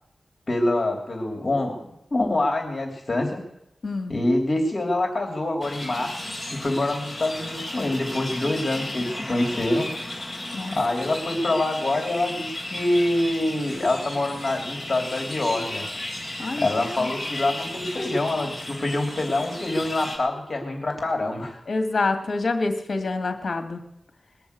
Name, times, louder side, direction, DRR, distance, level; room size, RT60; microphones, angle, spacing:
voice 1, 0.5-3.4 4.1-10.3 10.7-15.8 16.6-21.6, left 2 dB, 45° left, 2 dB, 3.2 m, -25 dB
voice 2, 3.8-4.2 10.5-10.8 16.4-16.7 17.0-17.1 21.7-23.8, left 3 dB, 65° left, 6 dB, 2.0 m, -26 dB
sound 1, 5.6-20.2, left 1 dB, 15° left, 3.6 m, -34 dB
21.0 x 7.1 x 8.2 m, 0.80 s
wide cardioid pair, 100°, 0 cm